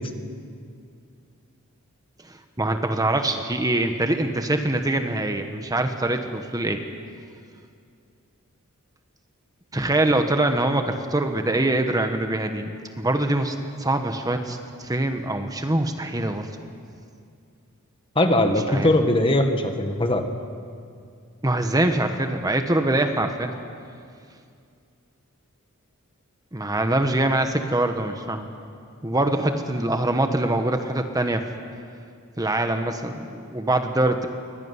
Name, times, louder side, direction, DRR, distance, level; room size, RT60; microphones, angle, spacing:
voice 1, 2.2-6.8 9.7-12.7 13.0-16.5 18.7-18.9 21.4-23.5 26.5-28.5 29.0-31.4 32.4-34.3, right 1 dB, 15° right, 6 dB, 1.3 m, -24 dB
voice 2, 18.2-20.2, left 1 dB, 25° left, 6 dB, 1.7 m, -20 dB
24.0 x 20.0 x 9.8 m, 2.3 s
head